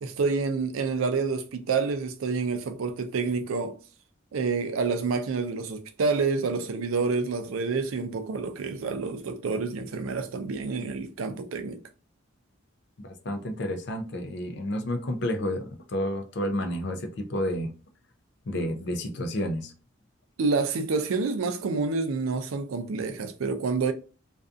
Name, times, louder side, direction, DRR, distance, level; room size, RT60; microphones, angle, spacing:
voice 1, 0.0-3.8 4.3-11.8 20.4-23.9, right 4 dB, 80° right, 0.4 m, -28 dB
voice 2, 13.0-17.7 18.5-19.7, left 1 dB, 55° left, 0.4 m, -30 dB
2.5 x 2.3 x 2.4 m
head